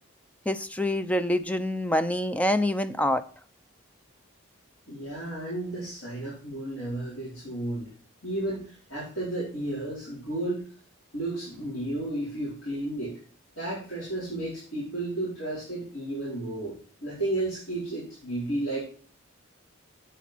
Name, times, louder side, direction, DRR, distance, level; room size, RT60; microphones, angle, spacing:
voice 1, 0.5-3.2, left 1 dB, 5° left, 12 dB, 0.4 m, -26 dB
voice 2, 4.9-7.9 8.2-10.7 11.1-13.2 13.6-18.8, right 1 dB, 85° left, -9 dB, 4.7 m, -33 dB
8.3 x 8.2 x 4.5 m, 0.44 s
head